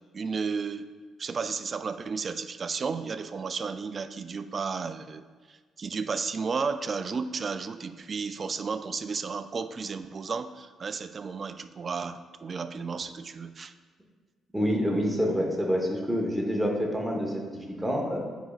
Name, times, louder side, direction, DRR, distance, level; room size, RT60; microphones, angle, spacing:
voice 1, 0.1-0.9 1.2-13.7, right 5 dB, 40° right, 11 dB, 0.3 m, -33 dB
voice 2, 14.5-18.2, equal, ahead, -1 dB, 1.1 m, -27 dB
9.5 x 5.0 x 2.4 m, 1.5 s
cardioid pair, 90°, 0 cm